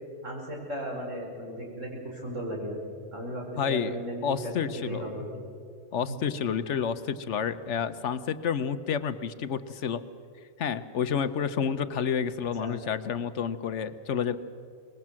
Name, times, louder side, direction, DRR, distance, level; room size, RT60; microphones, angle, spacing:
voice 1, 0.2-2.8 3.1-5.3 6.1-6.2 12.6-12.8, equal, 85° right, -1 dB, 5.5 m, -36 dB
voice 2, 3.6-5.1 5.9-10.0 10.6-14.4, left 7 dB, 70° left, 13 dB, 1.1 m, -30 dB
24.5 x 20.5 x 7.6 m, 2.3 s
omnidirectional pair, 1.3 m